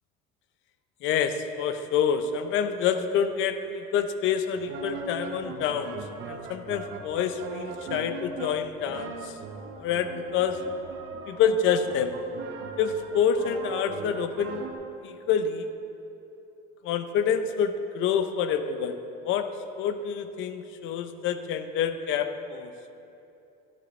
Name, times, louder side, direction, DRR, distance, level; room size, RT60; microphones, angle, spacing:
voice 1, 1.0-9.4 9.8-10.6 11.3-12.1 12.8-14.7 15.0-15.7 16.8-19.0 19.2-19.5 19.8-22.7, left 7 dB, 65° left, 9 dB, 0.7 m, -27 dB
sound 1, 4.5-14.7, right 5 dB, 60° right, 0.9 m, -40 dB
12.0 x 9.5 x 3.2 m, 2.9 s
cardioid pair, 105°, 21 cm